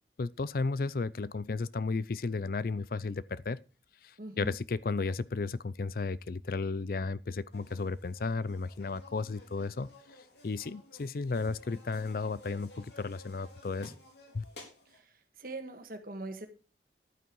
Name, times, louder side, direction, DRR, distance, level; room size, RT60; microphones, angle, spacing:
voice 1, 0.2-3.6 4.0-9.9 10.4-13.9 14.3-14.4, left 3 dB, 55° left, 0.5 m, -34 dB
voice 2, 4.2-4.5 14.9-16.5, right 2 dB, 55° right, 1.7 m, -42 dB
sound 1, 7.5-15.0, left 2 dB, 70° left, 3.8 m, -54 dB
11.0 x 9.1 x 4.7 m
head